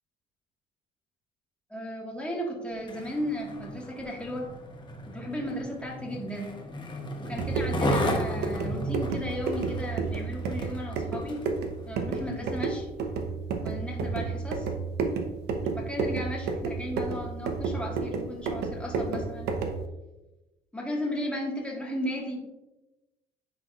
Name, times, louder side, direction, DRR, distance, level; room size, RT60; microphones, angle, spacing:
voice 1, 1.7-4.5 5.1-6.6 7.2-11.4 11.9-12.9 13.6-14.7 15.7-19.5 20.7-22.4, equal, 5° left, -2 dB, 1.6 m, -35 dB
Skateboard, 2.7-11.6 12.2-12.3, left 1 dB, 25° left, 1.0 m, -35 dB
sound 1, 7.2-19.9, right 4 dB, 85° right, 0.8 m, -31 dB
9.8 x 4.1 x 2.4 m, 1.0 s
cardioid pair, 110°, 17 cm